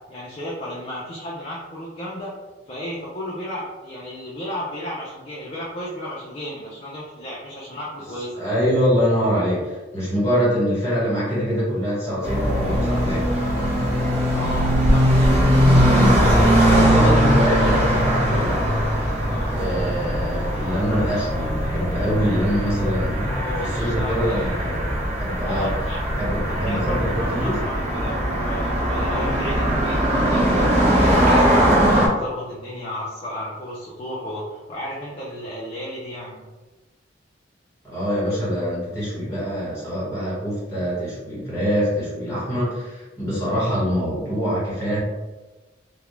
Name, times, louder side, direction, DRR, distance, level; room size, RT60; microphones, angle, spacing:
voice 1, 0.1-2.3 2.7-8.4 14.3-15.4 15.9-17.2 19.2-19.6 23.2-24.6 25.5-26.0 26.5-36.4, equal, 30° left, -6 dB, 0.4 m, -33 dB
voice 2, 8.4-13.2 16.5-18.6 19.5-24.9 25.2-25.7 26.1-27.6 37.8-45.0, equal, 15° left, -8 dB, 1.2 m, -24 dB
sound 1, 12.2-32.1, equal, 35° right, 0.6 m, -20 dB
2.3 x 2.0 x 3.0 m, 1.2 s
head